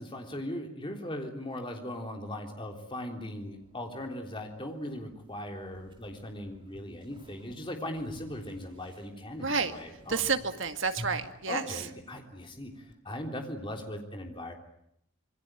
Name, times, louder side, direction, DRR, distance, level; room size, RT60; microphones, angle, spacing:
voice 1, 0.0-10.2 11.5-14.5, left 1 dB, 25° left, 3 dB, 3.6 m, -39 dB
sound 1, 3.4-13.0, equal, 20° right, 2.6 m, -52 dB
voice 2, 9.4-9.7 10.1-11.8, right 5 dB, 60° right, 7 dB, 2.0 m, -30 dB
27.0 x 22.0 x 9.1 m, 0.75 s
head